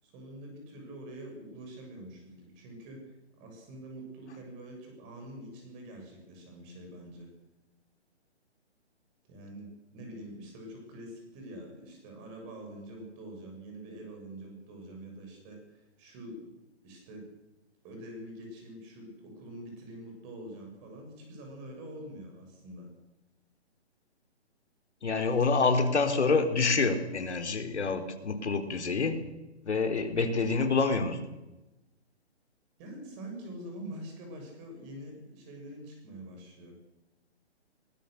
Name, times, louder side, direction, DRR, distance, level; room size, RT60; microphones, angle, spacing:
voice 1, 0.0-7.3 9.3-16.5 16.8-17.2 17.8-22.9 32.8-36.8, right 1 dB, 20° right, 2 dB, 7.1 m, -45 dB
voice 2, 25.0-29.2 29.7-31.2, left 4 dB, 75° left, 7 dB, 3.7 m, -27 dB
22.0 x 19.5 x 6.7 m, 1.0 s
hypercardioid pair, 160°, 34 cm